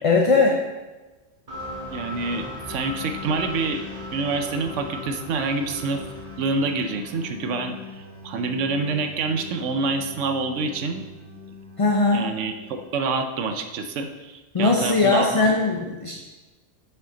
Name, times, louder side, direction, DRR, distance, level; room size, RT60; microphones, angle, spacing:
voice 1, 0.0-0.6 11.8-12.2 14.5-16.1, left 3 dB, 35° left, 0 dB, 0.7 m, -19 dB
sound 1, 1.5-13.2, left 2 dB, 30° right, 1.9 m, -39 dB
voice 2, 1.9-3.8 4.1-6.0 6.4-7.8 8.2-11.0 12.1-15.4, right 3 dB, 90° right, 7 dB, 1.0 m, -27 dB
9.8 x 5.7 x 3.8 m, 1.2 s
omnidirectional pair, 1.2 m